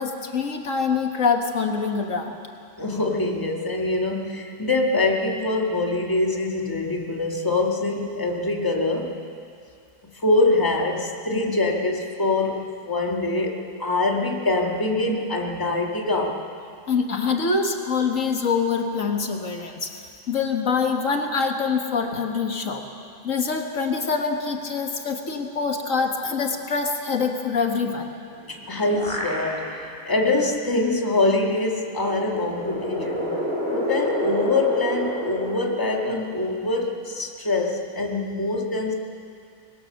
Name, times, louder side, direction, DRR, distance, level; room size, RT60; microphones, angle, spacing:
voice 1, 0.0-2.3 16.9-19.9 20.3-22.9 23.2-28.1, left 5 dB, 70° left, 3 dB, 1.9 m, -25 dB
voice 2, 2.8-9.2 10.1-16.4 28.5-33.4 33.7-38.9, left 2 dB, 15° left, 0 dB, 1.8 m, -24 dB
sound 1, 28.3-29.9 30.4-30.5 31.8-36.6, equal, 20° right, 5.1 m, -29 dB
24.0 x 21.0 x 6.6 m, 2.4 s
omnidirectional pair, 1.4 m